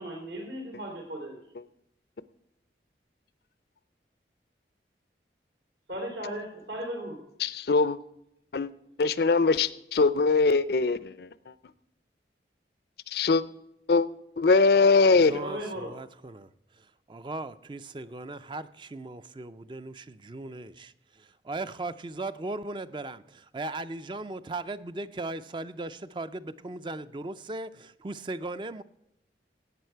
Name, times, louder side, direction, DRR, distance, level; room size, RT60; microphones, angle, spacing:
voice 1, 0.0-1.4 5.9-7.2 15.4-15.9, equal, 80° right, 1 dB, 3.2 m, -36 dB
voice 2, 7.4-8.0 8.5-8.7 9.0-11.3 13.1-13.4 13.9-14.1 14.4-15.4, left 4 dB, 65° left, 17 dB, 0.5 m, -22 dB
voice 3, 15.1-16.5 16.8-28.8, right 2 dB, 25° right, 13 dB, 0.4 m, -38 dB
17.5 x 8.5 x 4.5 m, 0.83 s
head